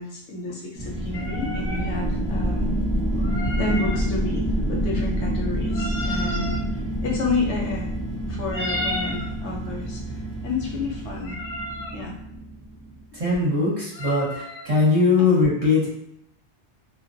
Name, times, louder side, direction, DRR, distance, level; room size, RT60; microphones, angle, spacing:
voice 1, 0.0-2.8 3.6-7.9 8.2-10.2 10.4-11.4 11.9-12.1, left 3 dB, 75° left, -1 dB, 0.9 m, -30 dB
sound 1, 0.7-13.0, right 1 dB, 15° right, 0.3 m, -28 dB
sound 2, 0.8-11.2, right 2 dB, 65° right, 0.7 m, -40 dB
sound 3, 1.1-1.9 3.2-4.0 5.7-6.6 8.5-9.3 11.2-12.0 13.9-14.7, left 1 dB, 45° left, 0.7 m, -32 dB
voice 2, 13.1-15.9, left 3 dB, 35° right, -8 dB, 0.8 m, -20 dB
2.2 x 2.1 x 2.5 m, 0.75 s
omnidirectional pair, 1.2 m